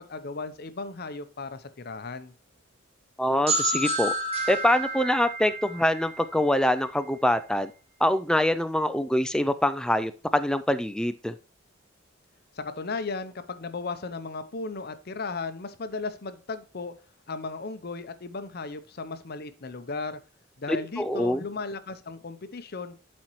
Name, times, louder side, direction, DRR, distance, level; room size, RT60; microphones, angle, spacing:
voice 1, 0.1-2.3 12.5-16.9 17.3-20.2 20.6-23.0, left 3 dB, 50° left, 11 dB, 0.7 m, -36 dB
voice 2, 3.2-4.1 4.5-7.7 8.0-11.4 20.7-21.4, left 1 dB, 5° left, 11 dB, 0.3 m, -24 dB
sound 1, 3.5-7.1, right 1 dB, 30° right, 1.7 m, -30 dB
11.5 x 4.3 x 3.1 m, 0.36 s
head